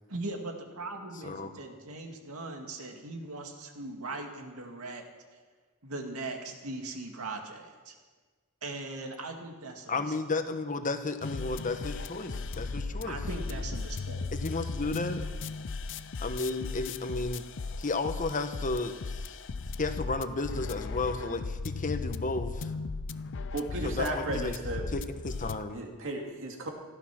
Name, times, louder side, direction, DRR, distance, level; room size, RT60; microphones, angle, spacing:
voice 1, 0.1-5.0 5.8-8.0 8.6-10.0 12.9-14.3, right 2 dB, 75° right, 3 dB, 2.2 m, -40 dB
voice 2, 9.9-13.2 14.3-15.2 16.2-17.4 17.8-19.4 19.8-22.7 23.8-24.6 24.9-25.8, left 3 dB, 35° left, 8 dB, 1.1 m, -33 dB
sound 1, 11.2-25.6, left 3 dB, 60° left, 0.6 m, -37 dB
voice 3, 23.5-24.9 25.7-26.7, right 1 dB, 60° right, 1 dB, 2.5 m, -34 dB
16.0 x 12.5 x 6.1 m, 1.4 s
head